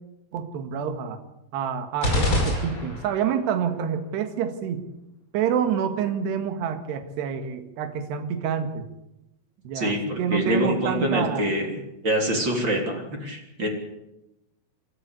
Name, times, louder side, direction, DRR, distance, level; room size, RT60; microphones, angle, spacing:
voice 1, 0.3-1.2 1.5-4.8 5.3-8.9 9.7-11.5, right 8 dB, 60° right, 7 dB, 3.5 m, -27 dB
sound 1, 2.0-3.3, left 1 dB, 15° left, 5.2 m, -24 dB
voice 2, 9.7-11.7 12.0-13.7, equal, 25° right, 2 dB, 3.4 m, -25 dB
28.0 x 13.0 x 8.3 m, 0.92 s
omnidirectional pair, 6.0 m